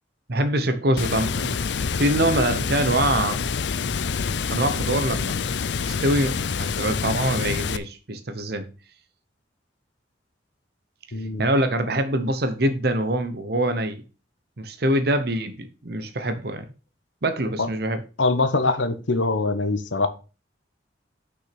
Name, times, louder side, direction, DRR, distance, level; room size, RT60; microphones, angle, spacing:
voice 1, 0.3-3.4 4.5-5.4 5.8-8.7 11.4-14.0 14.6-16.7 17.2-18.0, right 1 dB, 55° right, 0.9 m, -24 dB
Water, 1.0-7.8, left 5 dB, 70° left, 0.5 m, -27 dB
voice 2, 11.1-11.5 17.6-17.7 18.2-20.1, left 3 dB, 85° left, 1.1 m, -23 dB
6.0 x 6.0 x 5.9 m
head